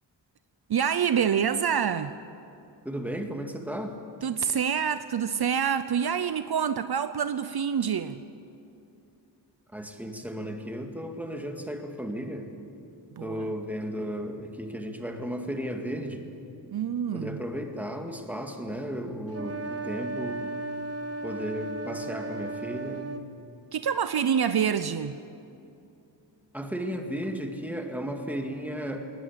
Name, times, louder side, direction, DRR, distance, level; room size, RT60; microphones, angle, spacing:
voice 1, 0.7-2.1 4.2-8.2 13.2-13.5 16.7-17.4 23.7-25.2, right 7 dB, 60° right, 0.7 m, -26 dB
voice 2, 2.8-4.0 9.7-12.5 13.2-16.3 17.1-20.6 21.2-23.2 26.5-29.1, equal, 5° right, 2.1 m, -34 dB
sound 1, 19.3-23.3, right 2 dB, 35° right, 1.1 m, -35 dB
20.5 x 19.0 x 8.7 m
wide cardioid pair, 120°, 43 cm